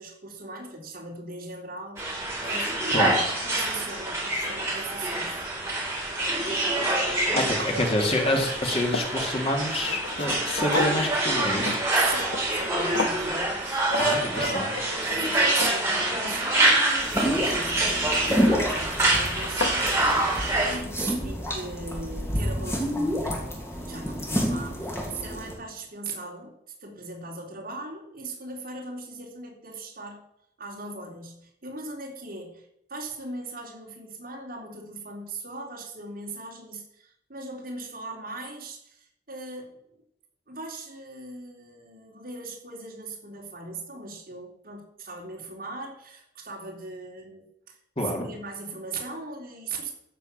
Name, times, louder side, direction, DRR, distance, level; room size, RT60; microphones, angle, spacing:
voice 1, 0.0-5.5 7.3-7.9 11.9-26.6 26.8-30.2 30.6-39.7 40.5-47.8 48.0-49.9, right 3 dB, 50° right, -1 dB, 3.7 m, -39 dB
sound 1, 2.0-20.8, right 2 dB, 15° right, 4.4 m, -26 dB
sound 2, 5.5-5.6 6.1-7.5 7.8-9.2 9.7-12.7 13.0-13.3 13.9-14.1 14.4-14.8 15.2-16.8 18.2-18.6 19.1-19.2 19.4-19.8, left 2 dB, 80° left, 1.3 m, -34 dB
voice 2, 7.0-11.8 14.0-14.7 48.0-48.3, left 1 dB, 35° left, 1 dB, 2.5 m, -27 dB
sound 3, 17.0-25.5, equal, 15° left, 3.5 m, -29 dB
14.5 x 6.7 x 7.5 m, 0.74 s
head